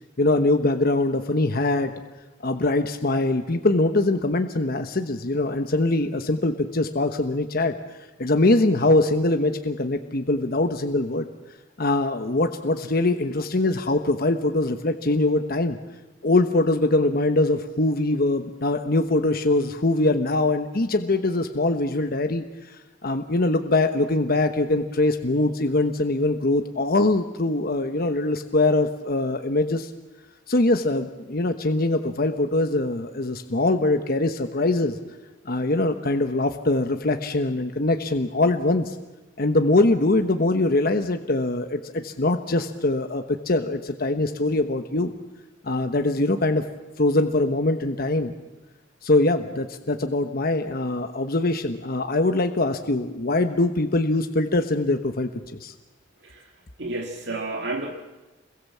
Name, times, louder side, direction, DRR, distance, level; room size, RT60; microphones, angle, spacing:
voice 1, 0.2-1.9 2.4-7.8 8.2-11.3 11.8-15.8 16.2-22.4 23.0-29.9 30.5-35.0 35.4-39.0 39.4-45.1 45.6-46.6 47.0-48.3 49.0-55.3 55.6-55.7, left 2 dB, 50° left, 7 dB, 1.1 m, -22 dB
voice 2, 56.8-57.9, right 2 dB, 65° right, 1 dB, 2.0 m, -30 dB
28.0 x 22.0 x 7.4 m, 1.1 s
head